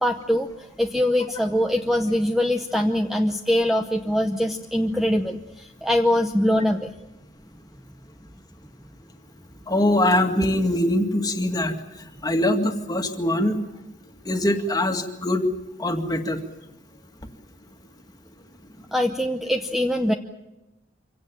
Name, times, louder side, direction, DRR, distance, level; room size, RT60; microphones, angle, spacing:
voice 1, 0.0-6.9 18.9-20.1, left 1 dB, ahead, 5 dB, 0.8 m, -23 dB
voice 2, 9.7-11.8 12.2-13.6 14.3-15.4 15.8-16.4, left 1 dB, 20° left, 5 dB, 2.0 m, -22 dB
25.5 x 17.5 x 9.2 m, 0.97 s
head